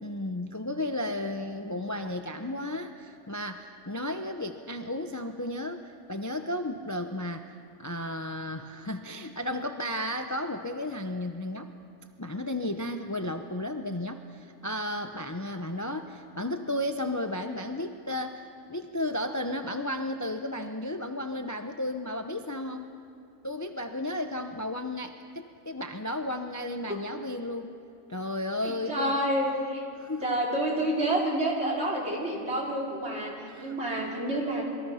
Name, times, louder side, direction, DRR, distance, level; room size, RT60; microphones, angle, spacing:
voice 1, 0.0-11.7 12.2-22.9 23.4-27.7 28.1-29.2 30.0-30.4 33.5-34.1, left 1 dB, 15° left, 6 dB, 0.7 m, -34 dB
voice 2, 28.6-29.8 30.2-34.7, right 1 dB, 55° right, -2 dB, 4.2 m, -29 dB
27.5 x 22.5 x 5.8 m, 2.4 s
omnidirectional pair, 1.4 m